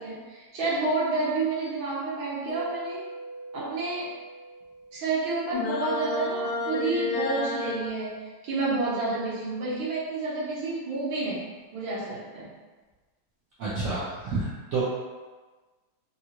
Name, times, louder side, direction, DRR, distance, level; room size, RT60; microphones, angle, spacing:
voice 1, 0.0-3.1 3.5-4.1 4.9-11.4 11.7-12.5, right 3 dB, 70° right, -7 dB, 1.6 m, -29 dB
Mallet percussion, 2.5-5.9, right 3 dB, 70° left, 1.2 m, -43 dB
sound 1, 5.5-7.9, left 2 dB, 85° left, 1.4 m, -30 dB
voice 2, 13.6-14.8, right 3 dB, 85° right, -9 dB, 0.7 m, -29 dB
3.8 x 2.3 x 2.9 m, 1.3 s
omnidirectional pair, 2.3 m